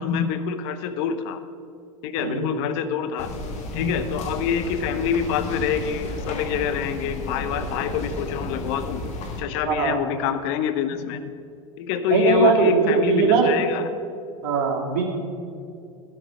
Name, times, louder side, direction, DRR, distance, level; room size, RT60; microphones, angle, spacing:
voice 1, 0.0-1.4 2.0-3.3 3.7-9.0 9.4-11.2 11.8-13.9, left 7 dB, 60° left, 11 dB, 0.7 m, -26 dB
sound 1, 3.2-9.4, left 1 dB, 40° left, 1.7 m, -33 dB
voice 2, 9.7-10.0 12.1-13.4 14.4-15.0, right 5 dB, 55° right, -1 dB, 2.5 m, -20 dB
13.5 x 6.6 x 5.3 m, 2.5 s
hypercardioid pair, 95°, 18 cm